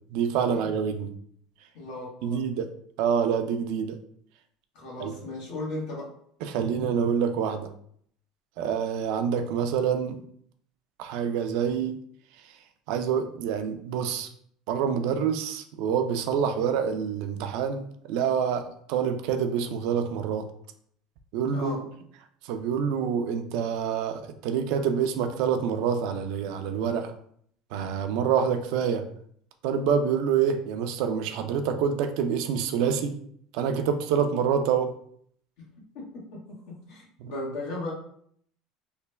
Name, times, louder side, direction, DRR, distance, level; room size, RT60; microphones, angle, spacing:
voice 1, 0.1-1.1 2.2-2.7 3.0-4.0 5.0-5.1 6.4-7.7 8.6-10.2 11.0-12.0 12.9-14.3 14.7-20.5 21.3-21.8 22.5-27.1 27.7-29.1 29.6-33.2 33.5-34.9 37.2-37.3, right 7 dB, 75° right, 7 dB, 0.4 m, -27 dB
voice 2, 1.7-2.4 4.7-6.1 21.5-21.9 35.6-37.9, left 2 dB, 80° left, -4 dB, 1.3 m, -37 dB
3.2 x 2.2 x 3.3 m, 0.63 s
supercardioid pair, 115°, 0 cm